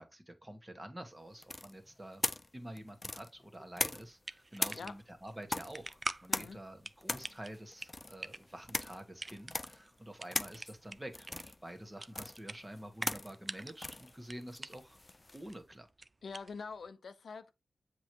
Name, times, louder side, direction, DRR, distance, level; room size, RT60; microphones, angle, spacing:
voice 1, 0.0-2.2 2.5-15.0 15.3-15.9, right 1 dB, 15° right, 1.5 m, -48 dB
sound 1, 1.4-4.2 4.6-15.5, left 2 dB, 25° left, 0.5 m, -40 dB
sound 2, 3.9-16.9, right 2 dB, 30° right, 0.5 m, -47 dB
voice 2, 4.7-5.0 6.3-6.6 16.2-17.5, left 5 dB, 75° left, 0.7 m, -45 dB
7.6 x 3.1 x 4.5 m
wide cardioid pair, 100°, 0 cm